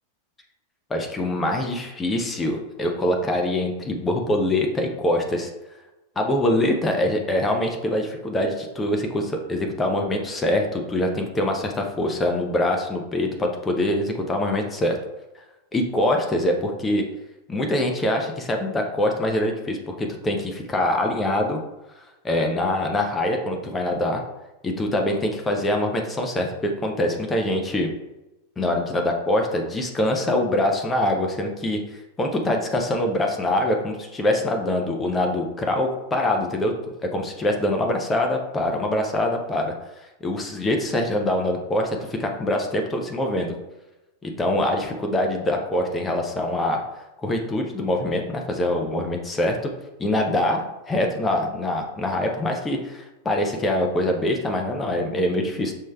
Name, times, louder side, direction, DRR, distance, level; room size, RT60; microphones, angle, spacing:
voice 1, 0.9-5.5 6.2-15.0 15.7-17.0 17.5-21.6 22.0-24.2 24.6-27.9 28.6-36.7 37.0-39.7 40.2-43.5 44.2-46.8 47.2-49.7 50.0-55.7, left 1 dB, 15° left, 2 dB, 0.5 m, -24 dB
6.4 x 3.1 x 2.2 m, 1.0 s
figure-of-eight pair, 90°, 0 cm